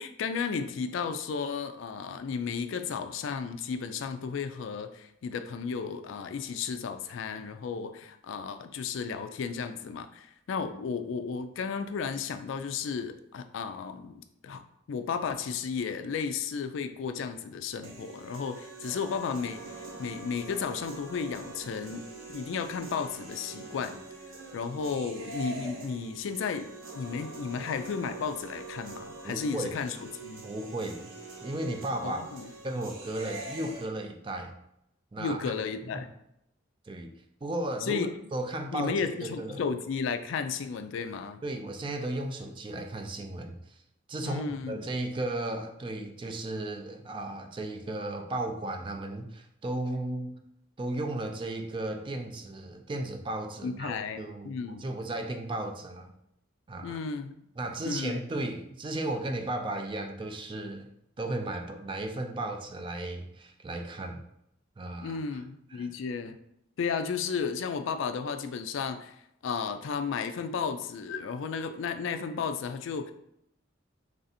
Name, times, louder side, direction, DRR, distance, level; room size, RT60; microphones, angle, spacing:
voice 1, 0.0-14.6 14.9-22.1 22.3-24.0 24.5-30.4 32.0-32.5 35.2-36.1 37.9-38.1 38.7-41.4 44.2-44.8 53.6-54.9 56.8-57.4 57.8-58.2 65.0-66.4 66.8-69.2 69.4-73.1, left 5 dB, 70° left, 9 dB, 0.3 m, -33 dB
sound 1, 17.8-33.8, right 2 dB, 80° right, 0.8 m, -44 dB
voice 2, 29.2-29.8 30.4-31.1 31.4-32.2 32.6-34.6 35.1-35.5 35.9-36.0 36.9-37.1 37.4-39.0 39.2-39.7 41.4-43.8 44.1-50.4 50.8-56.1 56.7-57.0 57.6-60.9 61.2-64.2 64.8-65.4 65.7-65.9, right 1 dB, 25° right, 4 dB, 0.3 m, -35 dB
3.4 x 2.6 x 4.1 m, 0.77 s
head